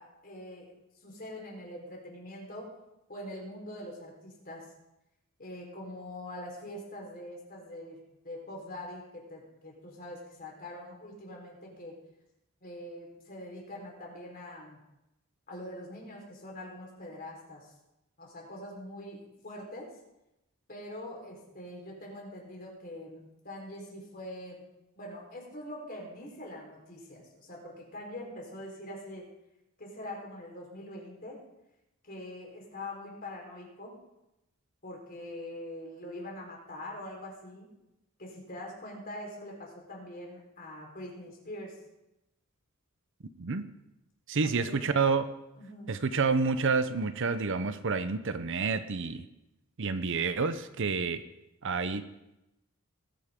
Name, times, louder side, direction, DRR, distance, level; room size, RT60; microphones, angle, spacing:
voice 1, 0.0-2.8 3.1-4.7 5.4-12.0 12.6-14.8 15.5-17.7 18.2-20.0 20.7-24.7 25.0-29.3 29.8-31.4 32.0-34.0 34.8-37.7 38.2-41.8 44.4-44.9 45.6-45.9, left 1 dB, 40° left, -1 dB, 4.2 m, -43 dB
voice 2, 44.3-45.2 45.9-49.3 49.8-51.2 51.6-52.0, right 4 dB, 55° right, 11 dB, 0.7 m, -29 dB
20.5 x 9.3 x 3.7 m, 0.90 s
head